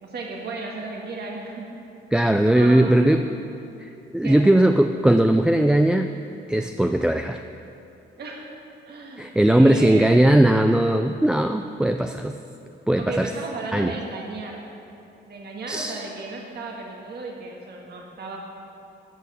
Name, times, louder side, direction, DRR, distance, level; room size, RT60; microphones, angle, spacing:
voice 1, 0.0-1.8 2.5-3.2 4.2-4.5 8.2-8.5 8.8-10.4 13.0-14.7 15.3-18.4, right 3 dB, 55° right, -1 dB, 1.7 m, -34 dB
voice 2, 2.1-3.3 3.8-6.1 6.5-7.4 9.2-12.4 12.9-13.3 13.7-14.0 15.7-16.0, right 1 dB, 5° right, 6 dB, 0.3 m, -19 dB
11.5 x 5.7 x 7.5 m, 2.7 s
cardioid pair, 90°, 20 cm